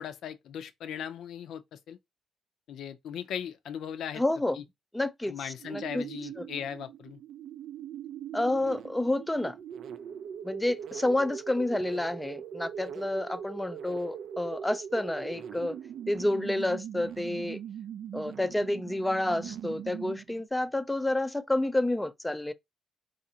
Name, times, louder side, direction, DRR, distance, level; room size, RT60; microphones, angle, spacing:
voice 1, 0.0-2.0 2.7-4.2 4.5-4.6 5.3-7.2, left 9 dB, 75° left, 0.5 m, -38 dB
voice 2, 4.2-4.6 4.9-6.0 8.3-9.6 10.4-15.8 16.1-17.6 18.1-22.5, left 1 dB, 10° left, 0.4 m, -29 dB
sound 1, 5.6-20.5, right 9 dB, 65° right, 0.4 m, -41 dB
4.0 x 2.5 x 2.7 m
cardioid pair, 90°, 0 cm